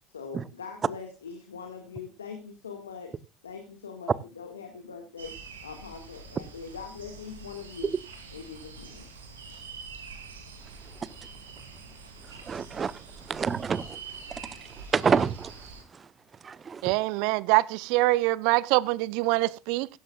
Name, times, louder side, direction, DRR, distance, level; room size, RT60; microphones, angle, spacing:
voice 1, 0.1-3.2 3.4-5.3 5.6-7.9 8.3-9.1, left 6 dB, 85° left, 1.9 m, -42 dB
sound 1, 5.2-15.8, right 4 dB, 85° right, 3.0 m, -45 dB
voice 2, 12.4-13.0 13.3-14.0 14.3-14.4 14.9-15.5 15.9-16.1 16.4-16.9, right 6 dB, 30° right, 0.8 m, -28 dB
voice 3, 16.8-19.9, right 20 dB, 65° right, 0.6 m, -24 dB
16.0 x 14.0 x 2.4 m
hypercardioid pair, 65°, 0 cm